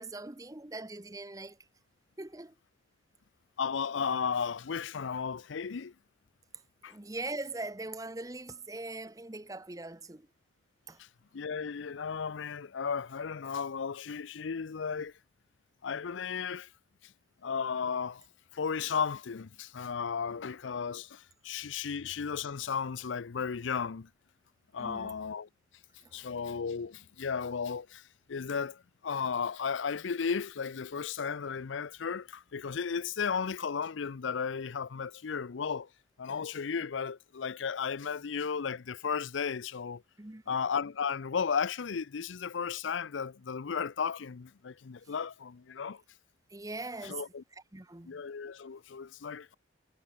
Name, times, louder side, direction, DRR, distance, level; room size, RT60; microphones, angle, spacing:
voice 1, 0.0-1.6 2.2-2.5 6.9-10.3 10.9-11.0 24.8-25.2 26.0-26.3 40.2-40.5 46.5-47.2 47.5-48.2, right 2 dB, 20° right, 0.8 m, -41 dB
voice 2, 3.6-5.9 6.8-7.0 11.0-11.1 11.3-15.1 15.8-16.7 17.0-17.1 17.4-18.2 18.5-24.1 24.7-25.5 26.1-35.9 36.2-40.0 40.5-46.0 47.0-47.4 48.0-49.6, left 6 dB, 85° left, 0.5 m, -34 dB
head